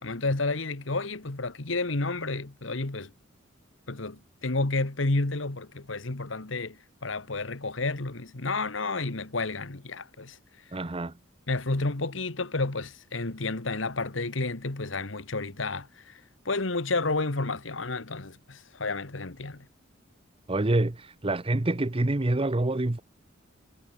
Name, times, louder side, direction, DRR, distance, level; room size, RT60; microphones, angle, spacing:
voice 1, 0.0-3.1 3.9-6.8 7.0-10.4 11.5-16.2 16.4-19.7, left 3 dB, 70° left, 1.6 m, -31 dB
voice 2, 10.7-11.1 20.5-23.0, right 2 dB, 30° right, 0.8 m, -26 dB
head